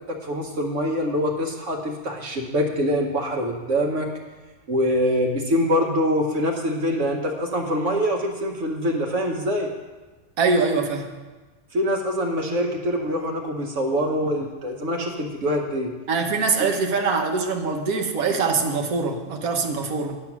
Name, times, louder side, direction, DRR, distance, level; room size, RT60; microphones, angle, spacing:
voice 1, 0.1-4.1 4.7-9.7 11.7-15.9, equal, 60° right, 1 dB, 1.2 m, -24 dB
voice 2, 10.4-11.1 16.1-20.2, right 4 dB, 80° right, 4 dB, 1.4 m, -23 dB
8.9 x 6.8 x 5.9 m, 1.2 s
omnidirectional pair, 1.5 m